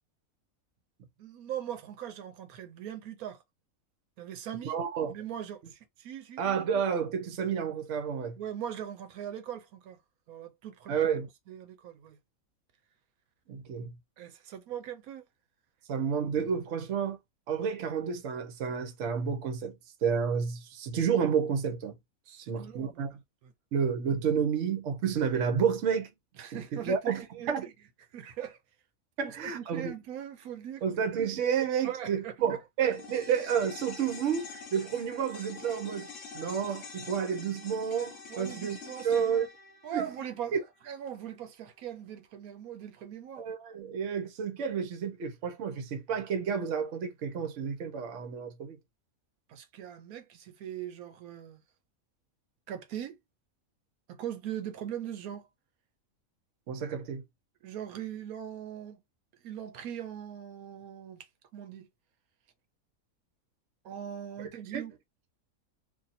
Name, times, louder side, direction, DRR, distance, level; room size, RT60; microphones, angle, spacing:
voice 1, 1.2-3.4 4.2-4.8 5.1-6.4 8.4-10.0 10.3-11.0 11.5-12.2 14.2-15.2 22.3-23.0 23.4-23.5 26.4-27.7 28.1-28.6 29.2-30.8 31.8-32.3 38.3-39.3 39.8-43.4 49.5-51.6 52.7-53.2 54.1-55.5 57.6-59.0 59.4-61.3 61.5-61.9 63.8-64.9, right 10 dB, 85° right, 1.1 m, -40 dB
voice 2, 4.6-5.1 6.4-8.3 10.9-11.3 13.5-13.9 15.9-17.2 17.5-19.8 20.0-21.9 22.5-23.1 23.7-26.1 26.5-26.6 26.9-27.7 29.2-29.9 30.8-36.1 36.3-38.8 39.0-39.5 39.9-40.1 40.5-40.6 43.4-48.8 56.7-57.2 64.7-64.8, right 7 dB, 65° right, 1.0 m, -30 dB
sound 1, 32.9-41.4 41.7-41.8, left 4 dB, 60° left, 1.2 m, -46 dB
2.7 x 2.6 x 4.0 m
omnidirectional pair, 1.5 m